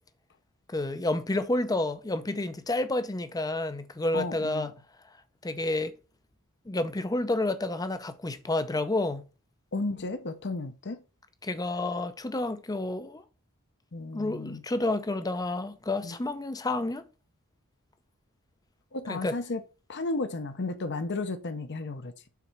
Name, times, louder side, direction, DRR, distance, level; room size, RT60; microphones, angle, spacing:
voice 1, 0.7-4.7 5.4-5.9 6.7-9.3 11.4-13.2 14.1-17.1 19.1-19.4, left 2 dB, 15° left, 0.6 m, -30 dB
voice 2, 4.1-4.7 9.7-11.0 13.9-14.6 16.0-16.2 18.9-19.6 19.9-22.3, left 3 dB, 50° left, 0.8 m, -33 dB
5.9 x 4.2 x 6.0 m
head